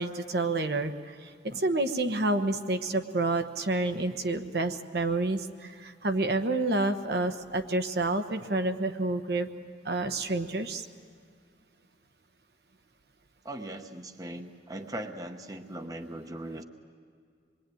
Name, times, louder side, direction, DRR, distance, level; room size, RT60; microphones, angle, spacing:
voice 1, 0.0-9.5 9.8-10.8, right 2 dB, 65° right, 6 dB, 1.1 m, -29 dB
voice 2, 13.4-16.6, right 1 dB, 20° right, 6 dB, 0.9 m, -39 dB
26.5 x 22.0 x 9.2 m, 2.2 s
head